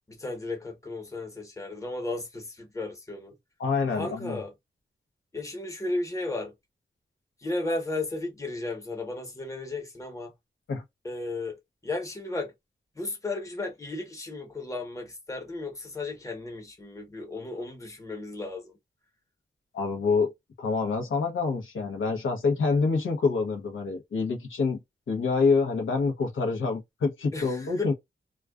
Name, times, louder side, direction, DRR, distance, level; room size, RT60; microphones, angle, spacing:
voice 1, 0.1-3.3 3.9-4.5 5.3-6.5 7.4-10.3 11.0-11.6 11.8-12.5 13.0-18.7 27.3-27.9, left 2 dB, 15° left, 1.0 m, -34 dB
voice 2, 3.6-4.4 10.7-10.8 19.7-20.3 20.6-24.8 25.1-27.9, left 4 dB, 75° left, 0.8 m, -26 dB
2.3 x 2.2 x 2.3 m
wide cardioid pair, 80°, 20 cm